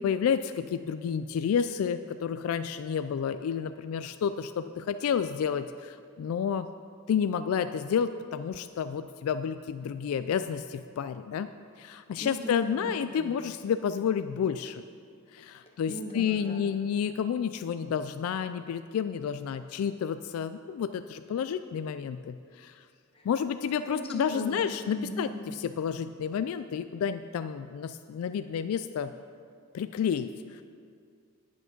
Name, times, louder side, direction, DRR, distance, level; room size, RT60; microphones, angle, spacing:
voice 1, 0.0-6.7 7.1-11.5 11.8-14.8 15.3-22.8 23.2-25.3 25.6-29.1 29.7-30.6, left 7 dB, 80° left, 13 dB, 0.3 m, -30 dB
voice 2, 12.2-13.3 15.6-16.6 23.1-23.3 23.8-24.1 24.3-24.6 24.9-25.3, equal, 25° left, -1 dB, 1.3 m, -39 dB
8.6 x 8.5 x 5.2 m, 2.2 s
head